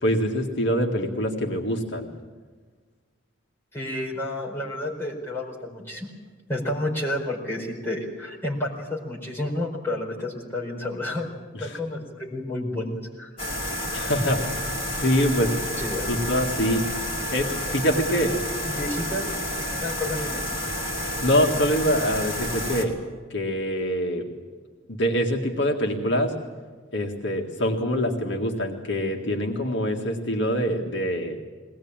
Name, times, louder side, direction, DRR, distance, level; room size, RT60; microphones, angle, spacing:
voice 1, 0.0-2.1 11.5-11.8 13.9-14.5 14.9-15.5 16.1-16.8 17.3-18.3 21.0-23.0 23.3-24.2 24.9-26.3 26.9-31.4, equal, 70° left, 1 dB, 2.0 m, -24 dB
voice 2, 3.7-6.1 6.5-11.3 11.6-13.3 15.4-15.5 15.8-16.1 18.1-18.3 18.6-19.2 19.8-20.4, left 1 dB, 10° left, -4 dB, 4.6 m, -30 dB
sound 1, 13.4-22.8, equal, 25° left, 3.3 m, -30 dB
22.0 x 18.5 x 8.9 m, 1.5 s
head